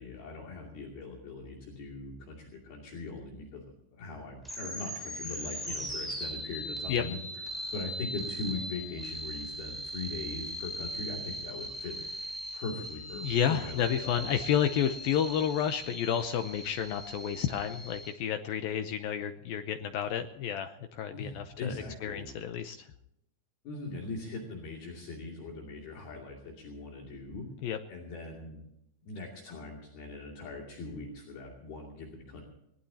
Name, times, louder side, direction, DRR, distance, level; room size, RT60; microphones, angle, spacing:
voice 1, 0.0-3.6 3.9-7.2 7.7-12.0 12.5-14.3 21.1-22.3 23.6-27.5 27.9-28.6 29.1-32.4, left 3 dB, 60° left, -1 dB, 4.4 m, -40 dB
sound 1, 4.4-18.1, equal, ahead, 6.8 m, -40 dB
voice 2, 13.2-21.7 22.0-22.9 27.6-27.8, left 9 dB, 80° left, 7 dB, 2.1 m, -31 dB
22.0 x 19.0 x 2.8 m, 0.80 s
omnidirectional pair, 5.2 m